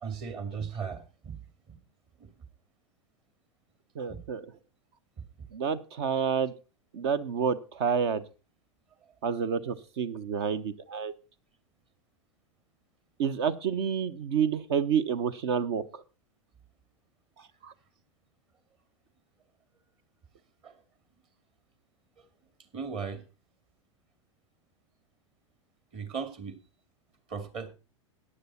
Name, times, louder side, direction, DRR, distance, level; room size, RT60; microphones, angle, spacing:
voice 1, 0.0-1.4 1.7-1.8 2.2-2.3 4.1-4.2 5.2-5.3 20.6-20.7 22.7-23.2 25.9-26.5 27.3-27.7, right 6 dB, 35° right, 10 dB, 2.3 m, -37 dB
voice 2, 4.0-4.5 5.5-6.5 6.9-8.2 9.2-11.1 13.2-16.0 17.6-17.7, right 7 dB, 60° right, 14 dB, 1.0 m, -29 dB
14.5 x 10.0 x 4.3 m, 0.32 s
figure-of-eight pair, 95°, 16 cm